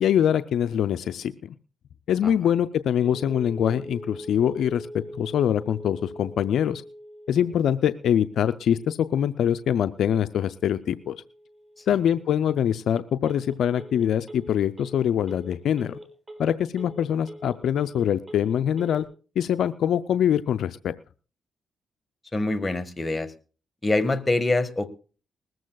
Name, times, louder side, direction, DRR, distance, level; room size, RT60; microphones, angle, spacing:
voice 1, 0.0-1.3 2.1-4.9 5.2-6.8 7.3-11.2 11.9-16.0 16.4-19.0 19.4-20.9, left 9 dB, 75° left, 12 dB, 0.5 m, -24 dB
Telephone, 3.0-19.0, equal, 25° right, 4.5 m, -43 dB
voice 2, 22.3-23.3 23.8-24.9, left 2 dB, 25° left, 10 dB, 1.6 m, -24 dB
20.5 x 14.0 x 2.3 m, 0.37 s
supercardioid pair, 55°, 0 cm